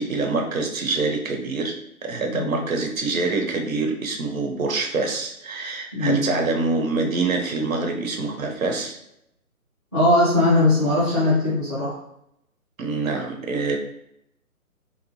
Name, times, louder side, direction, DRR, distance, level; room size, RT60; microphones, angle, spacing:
voice 1, 0.0-9.0 12.8-13.8, right 3 dB, 65° right, 3 dB, 0.7 m, -25 dB
voice 2, 2.3-2.6 5.9-6.3 9.9-12.0, left 1 dB, 5° left, -13 dB, 0.6 m, -20 dB
2.6 x 2.1 x 2.9 m, 0.78 s
figure-of-eight pair, 145°, 44 cm